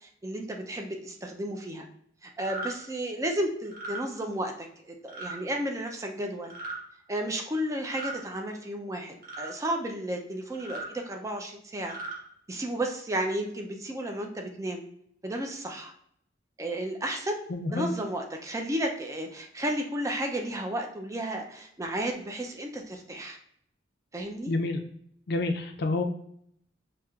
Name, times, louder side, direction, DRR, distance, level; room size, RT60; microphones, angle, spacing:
voice 1, 0.0-1.9 2.2-6.5 7.1-12.0 12.5-14.8 15.2-15.9 16.6-17.4 17.7-23.4 24.1-24.5, right 1 dB, 15° right, 3 dB, 0.4 m, -33 dB
sound 1, 2.4-2.7 3.7-4.0 5.1-5.4 6.4-6.8 7.8-8.2 9.2-9.5 10.5-10.9 11.8-12.2, right 2 dB, 50° right, 1.1 m, -37 dB
voice 2, 17.5-17.9 24.5-24.8 25.3-26.0, left 2 dB, 60° left, 4 dB, 0.5 m, -28 dB
5.9 x 2.8 x 2.4 m, 0.69 s
head